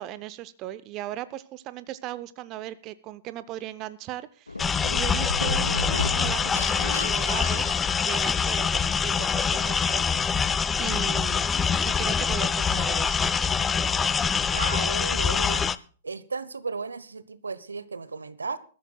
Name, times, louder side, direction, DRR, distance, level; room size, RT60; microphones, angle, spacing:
voice 1, 0.0-7.7 8.0-10.0 10.8-11.5 11.8-13.3, right 14 dB, 35° right, 16 dB, 0.6 m, -37 dB
sound 1, 4.5-8.5, left 3 dB, 90° left, 0.6 m, -33 dB
sound 2, 4.6-15.8, left 6 dB, 15° left, 0.5 m, -25 dB
voice 2, 14.5-15.7 16.0-18.6, right 4 dB, 85° right, 16 dB, 0.8 m, -34 dB
21.5 x 13.5 x 2.3 m, 0.39 s
figure-of-eight pair, 105°, 0 cm